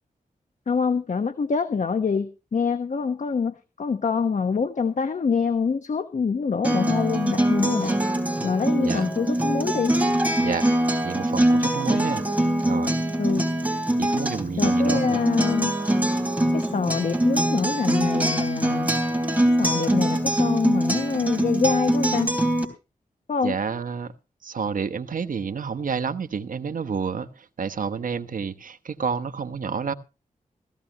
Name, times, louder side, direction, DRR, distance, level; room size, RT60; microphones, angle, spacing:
voice 1, 0.7-8.0 8.4-9.9 13.2-13.5 14.6-15.7 16.5-18.9 19.6-22.3 23.3-23.6, left 5 dB, 60° left, 1.2 m, -25 dB
Acoustic guitar, 6.6-22.7, right 1 dB, 10° right, 3.5 m, -23 dB
voice 2, 11.0-13.0 14.0-15.2 23.4-24.1 24.4-27.3 27.6-29.9, right 6 dB, 70° right, 1.1 m, -29 dB
16.5 x 16.0 x 2.9 m
wide cardioid pair, 120°, 14 cm